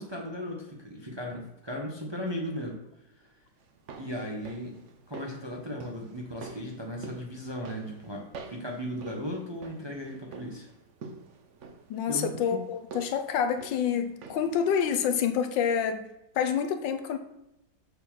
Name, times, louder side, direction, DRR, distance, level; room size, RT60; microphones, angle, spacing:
voice 1, 0.0-2.8 3.1-3.3 4.0-4.8 5.1-10.7 12.1-12.6, equal, 20° right, 0.9 m, -36 dB
sound 1, 3.6-14.6 14.9-15.0, right 4 dB, 55° right, 0.9 m, -47 dB
voice 2, 11.9-16.0 16.3-17.2, left 7 dB, 80° left, 1.4 m, -27 dB
6.7 x 4.3 x 6.3 m
omnidirectional pair, 2.0 m